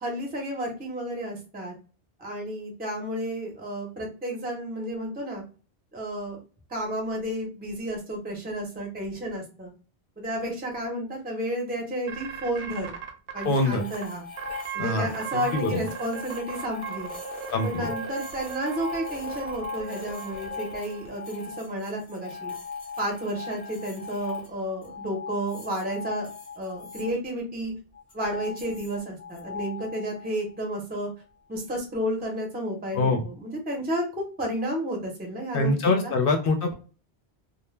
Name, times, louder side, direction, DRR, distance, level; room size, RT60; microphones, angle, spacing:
voice 1, 0.0-1.7 2.2-5.4 5.9-6.4 6.7-9.7 10.2-12.9 13.3-14.2 14.7-17.1 17.6-22.5 23.0-26.3 26.6-27.7 28.1-31.1 31.5-36.1, right 1 dB, 10° right, 0 dB, 0.5 m, -32 dB
sound 1, 12.1-13.4 13.9-14.0 14.4-15.6 15.9-21.1, right 8 dB, 60° right, 0.6 m, -37 dB
voice 2, 13.4-13.8 14.8-15.8 17.5-17.9 32.9-33.2 35.5-36.7, left 2 dB, 65° left, 4 dB, 0.7 m, -24 dB
sound 2, 13.4-27.1 27.9-30.5, left 6 dB, 35° left, 0.9 m, -39 dB
2.1 x 2.1 x 3.1 m, 0.36 s
omnidirectional pair, 1.1 m